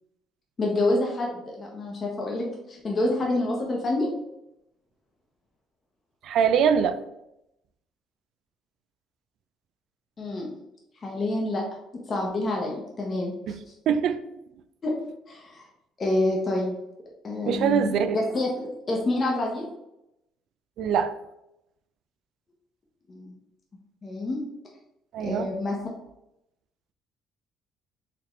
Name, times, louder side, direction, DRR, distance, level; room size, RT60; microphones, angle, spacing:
voice 1, 0.6-4.1 10.2-10.5 11.0-11.6 11.9-13.6 14.8-15.0 15.3-15.7 16.0-16.7 17.2-19.7 23.1-23.3 24.0-24.4 25.2-25.8, left 2 dB, 40° left, -1 dB, 0.9 m, -27 dB
voice 2, 6.2-7.0 13.5-13.6 13.9-14.2 17.5-18.2 20.8-21.1 25.1-25.5, right 7 dB, 70° right, 11 dB, 0.3 m, -23 dB
4.0 x 2.8 x 3.2 m, 0.86 s
supercardioid pair, 85°, 0 cm